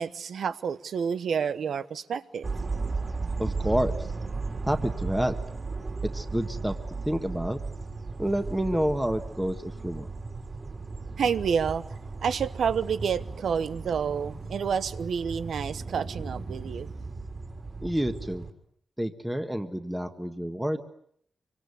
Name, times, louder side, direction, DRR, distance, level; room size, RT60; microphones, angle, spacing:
voice 1, 0.0-2.5 11.2-11.8 12.2-16.9, right 7 dB, 75° right, 1.1 m, -29 dB
sound 1, 2.4-18.5, right 3 dB, 35° right, 3.8 m, -35 dB
voice 2, 3.4-3.9 4.7-5.3 6.1-6.7 7.0-7.6 8.2-10.1 17.8-18.4 19.0-20.8, equal, 5° right, 1.5 m, -28 dB
26.0 x 25.0 x 8.4 m
wide cardioid pair, 165°, 0 cm